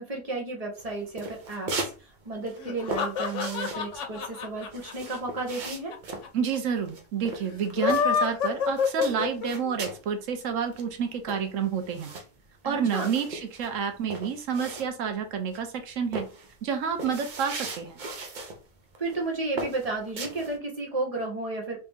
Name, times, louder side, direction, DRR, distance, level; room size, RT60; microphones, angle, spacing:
voice 1, 0.1-5.9 12.6-13.1 19.0-21.8, right 2 dB, 30° right, 0 dB, 1.2 m, -33 dB
sound 1, 0.8-2.0 2.3-8.4 8.7-10.1 10.4-10.5 10.7-15.2 15.5-15.8 16.1-18.6 18.9-19.2 19.6-20.6, right 2 dB, 45° right, 0.7 m, -38 dB
sound 2, 2.6-6.0 6.2-6.3 6.5-6.6 7.6-9.7, left 6 dB, 70° left, 1.0 m, -27 dB
voice 2, 6.3-12.1 12.6-16.3 16.6-18.0, right 7 dB, 80° right, 7 dB, 1.1 m, -29 dB
3.2 x 2.9 x 3.5 m, 0.35 s
omnidirectional pair, 1.3 m